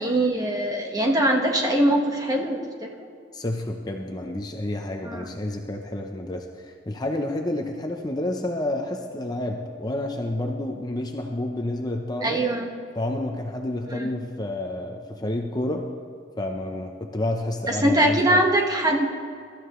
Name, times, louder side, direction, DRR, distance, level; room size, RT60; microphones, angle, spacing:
voice 1, 0.0-2.6 5.0-5.3 12.2-12.7 13.9-14.1 17.7-19.1, right 1 dB, 20° right, 1 dB, 1.3 m, -22 dB
voice 2, 3.3-12.4 13.0-15.9 16.4-18.4, left 1 dB, 20° left, 2 dB, 0.7 m, -29 dB
23.0 x 13.0 x 3.1 m, 2.3 s
head